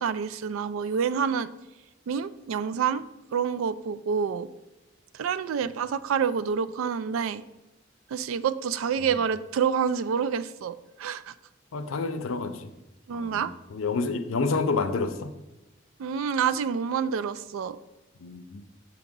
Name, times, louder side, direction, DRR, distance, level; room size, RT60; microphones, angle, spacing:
voice 1, 0.0-1.5 2.1-3.0 3.3-4.5 5.1-7.4 8.1-11.3 13.1-13.5 16.0-17.8, right 7 dB, 85° right, 14 dB, 0.3 m, -28 dB
voice 2, 11.7-12.7 13.1-13.4 13.7-15.3 18.2-18.7, left 4 dB, 85° left, 9 dB, 0.5 m, -29 dB
7.1 x 2.8 x 5.2 m, 1.0 s
head